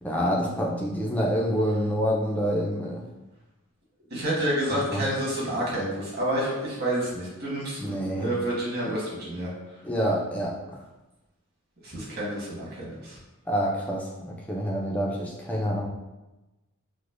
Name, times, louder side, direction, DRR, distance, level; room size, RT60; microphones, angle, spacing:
voice 1, 0.0-3.0 4.7-5.0 7.8-8.3 9.8-10.8 13.5-15.9, equal, 5° left, -3 dB, 0.3 m, -27 dB
voice 2, 4.1-9.5 11.8-13.2, right 1 dB, 45° right, -6 dB, 1.2 m, -29 dB
4.8 x 2.0 x 2.4 m, 1.1 s
head